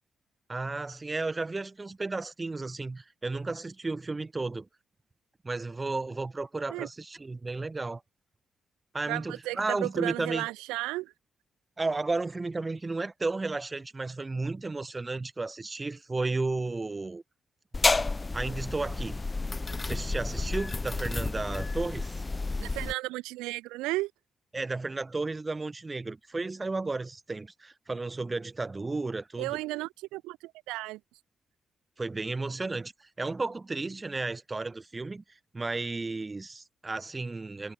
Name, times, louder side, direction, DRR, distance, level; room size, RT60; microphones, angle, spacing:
voice 1, 0.5-4.7 5.4-8.0 8.9-10.5 11.8-17.2 18.3-19.2 19.8-22.1 24.5-29.6 32.0-35.2 35.5-37.7, right 3 dB, 30° right, 4.6 m, -33 dB
voice 2, 9.1-11.1 22.6-24.1 29.4-31.0, right 20 dB, 90° right, 0.9 m, -34 dB
sound 1, 17.7-22.9, left 3 dB, 30° left, 2.0 m, -30 dB
hypercardioid pair, 45°, 0 cm